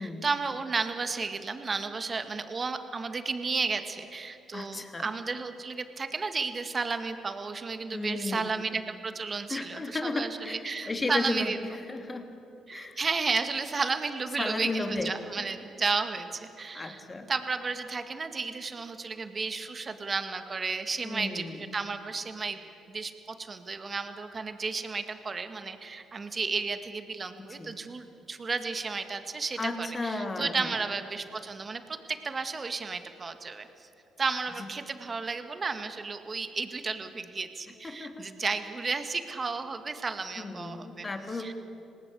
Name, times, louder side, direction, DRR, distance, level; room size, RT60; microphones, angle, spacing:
voice 1, 0.0-11.6 12.7-17.0 17.3-22.6 22.9-33.9 34.2-41.1 41.4-41.5, right 4 dB, 35° right, 8 dB, 2.0 m, -33 dB
voice 2, 4.5-5.1 7.9-8.5 9.5-12.4 12.7-13.0 14.4-15.5 16.7-17.3 21.0-21.6 27.4-27.7 29.6-30.8 34.6-34.7 37.8-38.3 40.4-41.5, left 2 dB, 30° left, 5 dB, 3.0 m, -34 dB
26.5 x 19.0 x 8.4 m, 2.8 s
hypercardioid pair, 55°, 0 cm